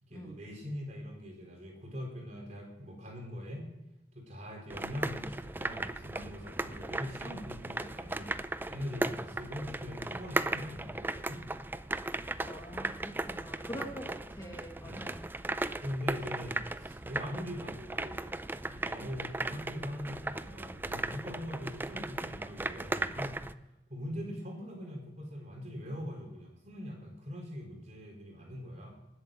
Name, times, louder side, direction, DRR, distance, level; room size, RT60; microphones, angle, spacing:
voice 1, 0.0-3.7 4.1-8.3 8.7-11.4 13.7-13.9 14.8-15.2 15.8-18.3 18.7-23.4 23.9-28.9, equal, 40° right, 0 dB, 4.1 m, -42 dB
sound 1, 4.7-23.5, right 2 dB, 10° right, 0.4 m, -37 dB
voice 2, 12.4-15.3, equal, 20° left, 1 dB, 1.5 m, -45 dB
19.5 x 8.0 x 6.4 m, 0.96 s
head